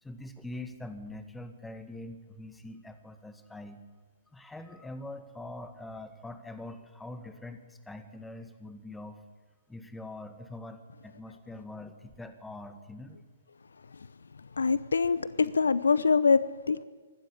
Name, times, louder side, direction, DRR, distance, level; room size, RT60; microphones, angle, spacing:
voice 1, 0.0-3.8 4.3-9.2 9.7-13.2, left 2 dB, 5° left, 9 dB, 1.8 m, -43 dB
voice 2, 14.6-16.8, left 5 dB, 75° left, 18 dB, 0.8 m, -24 dB
24.5 x 12.5 x 8.8 m, 1.5 s
figure-of-eight pair, 120°, 0 cm